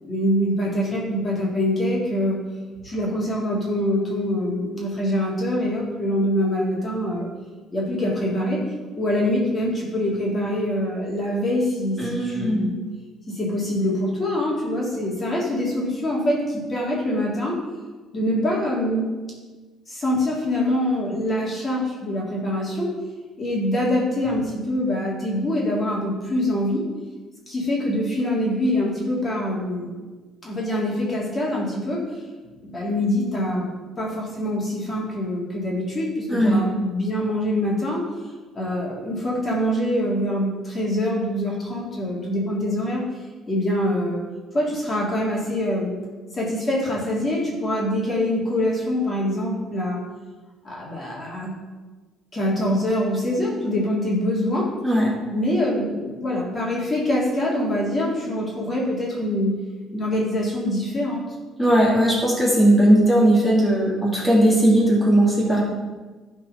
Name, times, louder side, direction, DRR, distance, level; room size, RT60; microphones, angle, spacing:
voice 1, 0.0-2.4 2.8-7.3 7.7-8.6 8.9-12.8 13.3-17.6 18.1-19.1 19.9-22.9 23.4-26.8 27.5-29.9 30.4-32.0 32.6-33.6 34.0-38.0 38.5-43.0 43.5-44.2 44.5-45.9 46.3-50.0 50.6-51.5 52.3-54.7 55.3-59.6 59.9-61.3, left 1 dB, 25° left, -4 dB, 2.6 m, -24 dB
voice 2, 12.0-12.6 36.3-36.6 54.8-55.1 61.6-65.6, right 1 dB, ahead, -6 dB, 2.6 m, -18 dB
11.5 x 4.5 x 5.6 m, 1.3 s
cardioid pair, 120°, 0 cm